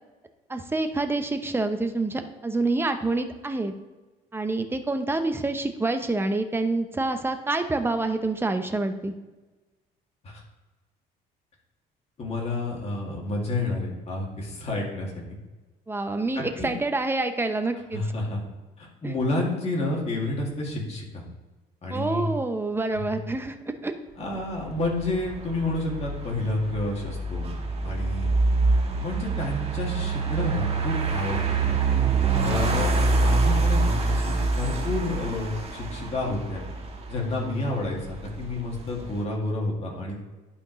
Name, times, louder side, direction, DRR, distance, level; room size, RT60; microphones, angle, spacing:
voice 1, 0.5-3.7 4.3-9.1 15.9-18.0 19.0-19.1 21.9-23.9, right 2 dB, 15° right, 7 dB, 0.7 m, -27 dB
voice 2, 12.2-15.4 16.3-16.7 17.9-18.4 18.8-21.2 21.8-22.2 23.0-23.1 24.2-27.5 27.8-28.3 29.0-31.6 32.4-36.7 37.1-40.2, left 2 dB, 40° left, -2 dB, 2.3 m, -30 dB
sound 1, 24.4-39.2, right 3 dB, 35° right, 1.4 m, -26 dB
11.5 x 5.0 x 3.1 m, 1.2 s
cardioid pair, 110°, 17 cm